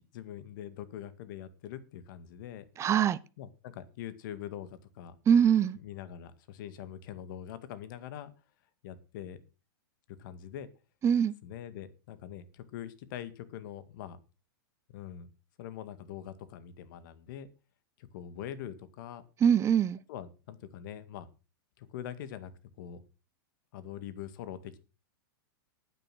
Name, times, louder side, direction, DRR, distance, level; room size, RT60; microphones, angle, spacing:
voice 1, 0.0-2.6 3.4-5.2 5.8-8.3 8.8-9.4 10.1-10.7 11.4-14.2 14.9-15.3 15.6-17.5 18.0-19.2 20.1-21.3 21.8-22.5 22.8-23.0 23.7-24.8, left 10 dB, 60° left, 2.1 m, -43 dB
voice 2, 2.8-3.2 5.3-5.8 11.0-11.3 19.4-20.0, right 8 dB, 25° right, 0.7 m, -23 dB
10.5 x 9.9 x 6.2 m
hypercardioid pair, 120°, 12 cm